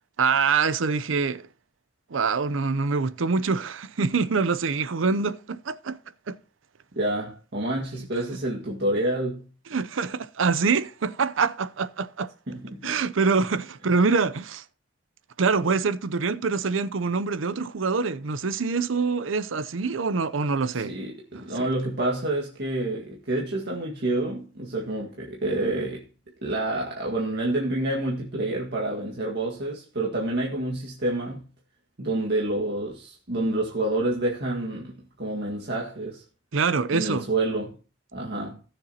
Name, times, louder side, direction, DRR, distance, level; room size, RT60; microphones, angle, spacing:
voice 1, 0.2-1.4 2.1-6.0 6.3-6.4 9.7-12.3 12.8-14.6 15.4-20.9 21.3-21.7 36.5-37.3, right 4 dB, 90° right, 0.6 m, -25 dB
voice 2, 6.9-9.4 12.5-13.0 20.7-26.1 26.4-31.4 32.0-36.2 36.9-37.8 38.1-38.6, right 2 dB, 60° right, 1.8 m, -28 dB
18.0 x 6.8 x 2.9 m
head